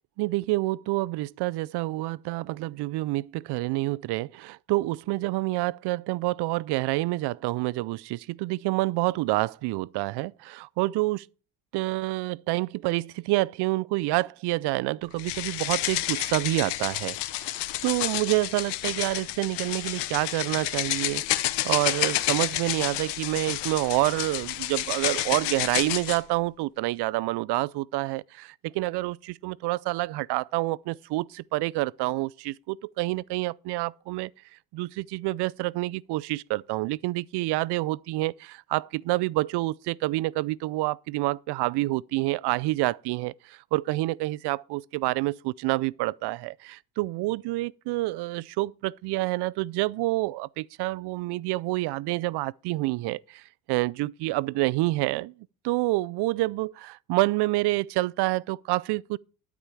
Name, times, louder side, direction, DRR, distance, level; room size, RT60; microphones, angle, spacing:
voice 1, 0.2-11.3 11.7-17.2 17.4-17.6 17.8-34.3 34.7-55.3 55.6-59.2, right 19 dB, 75° right, 0.5 m, -28 dB
sound 1, 15.2-26.2, left 16 dB, 85° left, 0.8 m, -30 dB
12.5 x 4.9 x 6.9 m
supercardioid pair, 80°, 40 cm